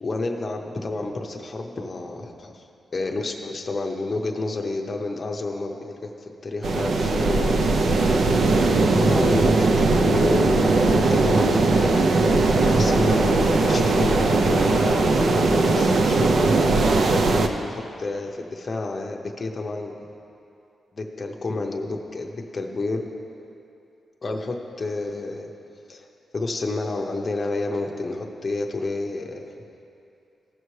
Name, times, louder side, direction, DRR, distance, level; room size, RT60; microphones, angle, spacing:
voice 1, 0.0-2.6 2.9-7.9 8.9-12.1 12.6-16.3 17.2-20.0 20.9-23.0 24.2-25.5 25.9-26.0 26.3-29.5, left 2 dB, 30° left, 1 dB, 0.7 m, -30 dB
sound 1, 6.6-17.5, right 3 dB, 60° right, 0.5 m, -19 dB
15.5 x 5.6 x 3.2 m, 2.7 s
wide cardioid pair, 160°, 0 cm